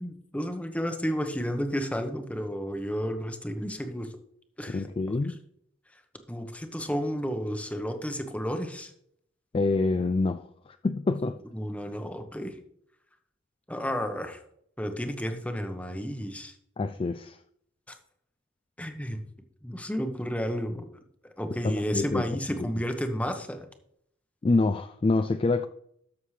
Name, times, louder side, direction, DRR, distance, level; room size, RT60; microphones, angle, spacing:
voice 1, 0.0-4.1 4.6-5.2 6.3-8.9 11.5-12.6 13.7-14.4 14.8-16.5 18.8-19.2 19.6-20.9 21.2-23.7, equal, 5° left, 1.0 m, -32 dB
voice 2, 4.7-5.3 9.5-10.4 10.8-11.4 16.8-17.4 21.6-22.2 22.6-22.7 24.4-25.7, left 3 dB, 25° left, 0.3 m, -26 dB
13.0 x 6.5 x 3.3 m
head